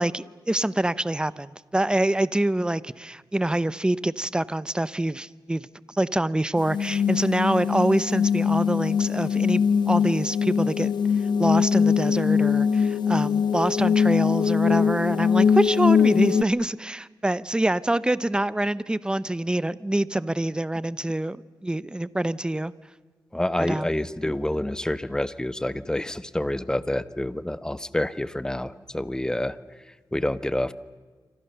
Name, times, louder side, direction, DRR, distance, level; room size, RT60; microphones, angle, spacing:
voice 1, 0.0-5.7 5.9-22.7 23.6-23.9, right 1 dB, 10° right, 18 dB, 0.9 m, -26 dB
sound 1, 6.6-16.4, left 6 dB, 90° left, 1.0 m, -22 dB
voice 2, 23.3-29.6 30.1-30.7, left 1 dB, 10° left, 15 dB, 1.1 m, -28 dB
28.0 x 26.0 x 6.9 m, 1.4 s
wide cardioid pair, 95°, 7 cm